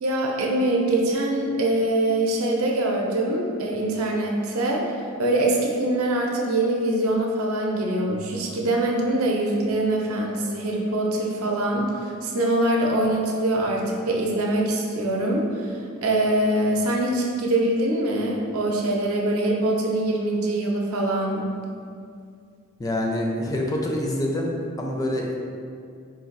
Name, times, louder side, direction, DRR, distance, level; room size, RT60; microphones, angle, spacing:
voice 1, 0.0-4.8 5.2-21.4, right 1 dB, 85° right, -1 dB, 0.6 m, -23 dB
voice 2, 22.8-24.5 24.8-25.4, left 1 dB, 15° left, -1 dB, 0.4 m, -26 dB
4.2 x 2.5 x 4.0 m, 2.3 s
head